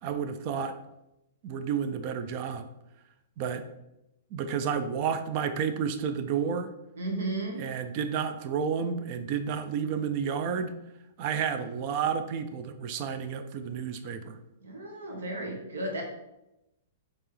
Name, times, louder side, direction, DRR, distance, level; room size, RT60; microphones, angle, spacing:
voice 1, 0.0-0.8 1.4-2.7 3.4-3.7 4.3-6.7 7.6-10.7 11.2-14.4, right 7 dB, 45° right, 9 dB, 0.4 m, -31 dB
voice 2, 6.9-7.6 14.6-16.0, right 2 dB, 75° right, 1 dB, 1.1 m, -34 dB
4.5 x 3.0 x 3.2 m, 0.90 s
hypercardioid pair, 115°, 0 cm